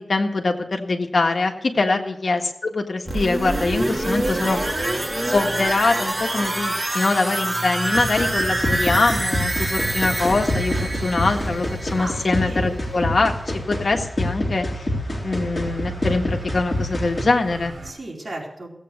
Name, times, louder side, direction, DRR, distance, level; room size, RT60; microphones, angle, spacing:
voice 1, 0.0-4.6 5.3-13.3 13.7-14.9 15.2-17.7, left 3 dB, 65° left, 3 dB, 1.7 m, -23 dB
sound 1, 3.1-12.8 13.1-13.2, right 1 dB, 30° right, 3.0 m, -26 dB
sound 2, 7.9-17.2, left 1 dB, 30° left, 3.5 m, -27 dB
sound 3, 8.1-17.9, right 5 dB, 65° right, 4.5 m, -38 dB
voice 2, 12.0-12.7 17.8-18.8, right 1 dB, 45° right, -2 dB, 4.3 m, -35 dB
17.0 x 8.5 x 6.7 m, 0.80 s
wide cardioid pair, 100°, 0 cm